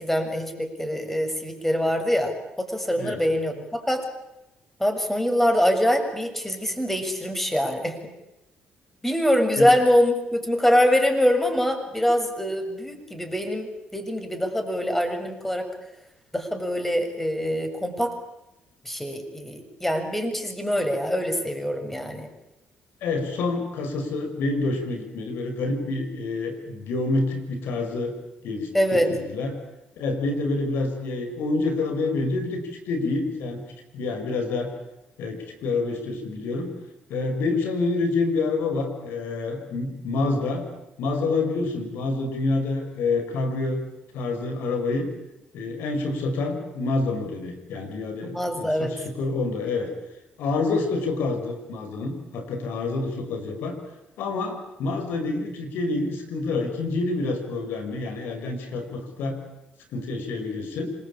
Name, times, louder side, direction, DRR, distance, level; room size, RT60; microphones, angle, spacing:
voice 1, 0.0-4.1 4.8-8.0 9.0-15.7 16.3-18.2 18.9-22.3 28.7-29.1 48.2-48.9, equal, 5° left, 5 dB, 7.0 m, -24 dB
voice 2, 23.0-28.1 28.4-29.6 30.0-33.6 33.9-34.7 35.2-36.7 37.1-40.6 41.0-43.8 44.1-45.1 45.5-49.9 50.4-53.8 54.2-59.4 59.9-60.9, left 3 dB, 75° left, 6 dB, 5.9 m, -27 dB
26.5 x 21.0 x 8.8 m, 0.91 s
supercardioid pair, 60°, 4 cm